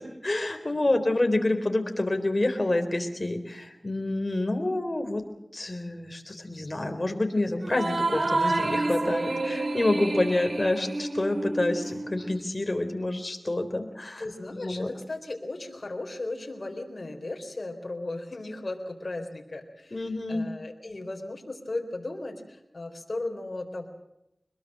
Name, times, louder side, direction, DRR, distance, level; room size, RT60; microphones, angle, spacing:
voice 1, 0.0-5.2 5.5-14.2 14.6-14.9 19.9-20.5, left 2 dB, 40° left, 6 dB, 3.9 m, -28 dB
sound 1, 7.6-12.4, right 2 dB, 75° right, 3.2 m, -29 dB
voice 2, 14.2-20.0 20.3-23.9, left 2 dB, 60° left, 2 dB, 4.0 m, -36 dB
23.5 x 21.5 x 7.6 m, 0.86 s
wide cardioid pair, 50°, 0 cm